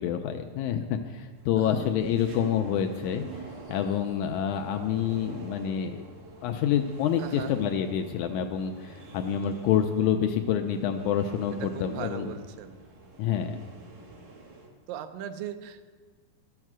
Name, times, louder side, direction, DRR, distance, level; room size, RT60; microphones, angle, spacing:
voice 1, 0.0-3.2 3.7-6.0 6.4-12.3 13.2-13.6, left 9 dB, 85° left, 5 dB, 1.7 m, -27 dB
sound 1, 1.4-14.7, right 3 dB, 50° right, 2.2 m, -47 dB
voice 2, 1.6-1.9 7.2-7.5 11.6-12.8 14.9-15.9, right 10 dB, 80° right, 9 dB, 2.3 m, -38 dB
12.0 x 7.4 x 6.1 m, 1.5 s
omnidirectional pair, 4.0 m